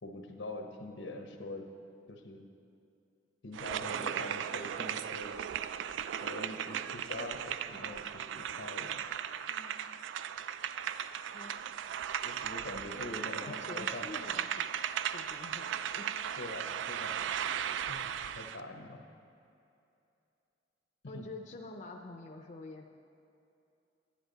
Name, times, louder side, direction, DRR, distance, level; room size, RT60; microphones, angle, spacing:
voice 1, 0.0-1.7 2.1-2.4 3.4-5.4 6.2-9.0 12.2-14.1 16.4-19.1 21.0-21.3, left 2 dB, 85° left, 4 dB, 1.0 m, -44 dB
sound 1, 3.5-18.6, right 9 dB, 80° right, 0.3 m, -37 dB
voice 2, 9.5-9.8 11.3-11.5 12.9-14.6 15.1-16.2 21.1-22.9, left 2 dB, 40° left, 3 dB, 0.5 m, -47 dB
10.5 x 9.6 x 4.0 m, 2.7 s
head